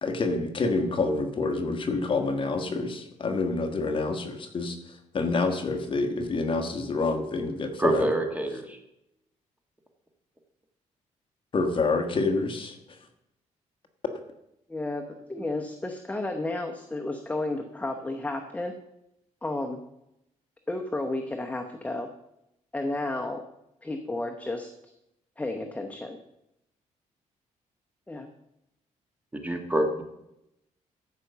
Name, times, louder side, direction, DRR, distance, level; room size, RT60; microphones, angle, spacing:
voice 1, 0.0-8.1 11.5-13.0, left 3 dB, 40° left, 5 dB, 1.4 m, -28 dB
voice 2, 7.8-8.8 29.3-30.0, right 1 dB, 10° right, 4 dB, 1.5 m, -26 dB
voice 3, 14.7-18.8 19.4-19.8 20.7-22.1 22.7-23.4 23.8-24.7 25.4-26.2 28.1-28.3, left 2 dB, 10° left, 4 dB, 0.8 m, -32 dB
13.0 x 5.3 x 6.8 m, 0.85 s
cardioid pair, 125°, 13 cm